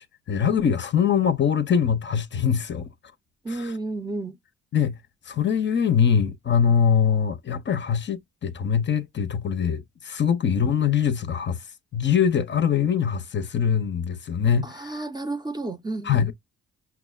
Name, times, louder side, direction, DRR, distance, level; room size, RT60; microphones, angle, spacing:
voice 1, 0.0-2.9 3.5-3.7 4.7-5.0 5.3-11.6 11.9-15.0 16.0-16.3, left 7 dB, 40° left, 0.6 m, -23 dB
voice 2, 3.4-4.4 14.6-16.3, right 2 dB, 15° right, 0.6 m, -32 dB
5.8 x 2.0 x 2.2 m
cardioid pair, 90°, 30 cm